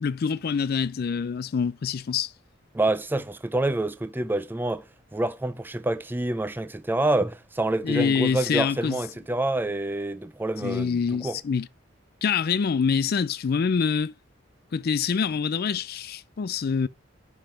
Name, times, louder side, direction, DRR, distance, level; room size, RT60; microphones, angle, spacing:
voice 1, 0.0-2.3 7.8-9.0 10.6-11.7 12.2-14.1 14.7-16.9, left 6 dB, 50° left, 0.4 m, -25 dB
voice 2, 2.7-4.8 5.1-11.4, right 2 dB, 10° right, 0.4 m, -27 dB
10.5 x 3.6 x 5.7 m
head